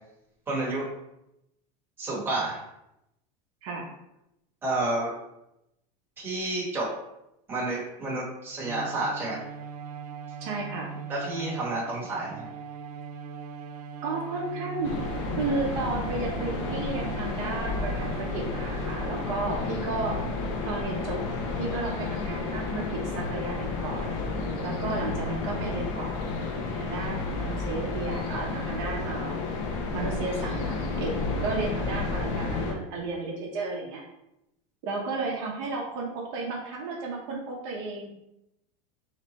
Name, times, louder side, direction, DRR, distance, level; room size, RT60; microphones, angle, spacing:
voice 1, 0.5-0.9 2.0-2.6 4.6-5.1 6.2-6.9 7.5-9.4 11.1-12.5, right 2 dB, 10° right, -5 dB, 1.1 m, -30 dB
Bowed string instrument, 8.6-19.8, right 6 dB, 90° right, 0.5 m, -40 dB
voice 2, 10.4-11.0 14.0-15.0 15.3-20.2 20.7-21.2 21.6-24.1 24.6-26.3 26.7-29.4 29.9-31.1 31.4-34.0 34.8-38.1, right 3 dB, 50° right, -2 dB, 0.8 m, -33 dB
sound 1, 14.8-32.7, left 3 dB, 60° left, 0.8 m, -31 dB
3.2 x 3.0 x 4.0 m, 0.85 s
supercardioid pair, 165°, 19 cm